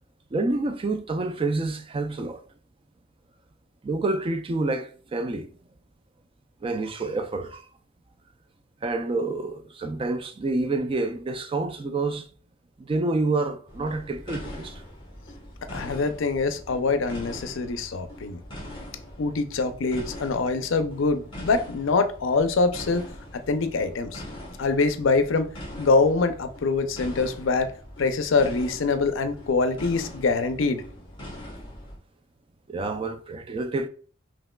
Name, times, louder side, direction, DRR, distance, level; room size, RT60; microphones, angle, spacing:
voice 1, 0.3-2.4 3.8-5.5 6.6-7.7 8.8-12.3 12.8-14.8 32.7-33.9, right 2 dB, 25° right, 0.3 m, -28 dB
sound 1, 13.7-32.0, equal, 25° left, 1.2 m, -42 dB
voice 2, 15.7-18.4 19.2-23.1 23.3-24.2 24.6-25.5 25.8-27.7 28.0-30.8, left 3 dB, 75° left, 0.5 m, -24 dB
5.2 x 2.9 x 2.2 m
head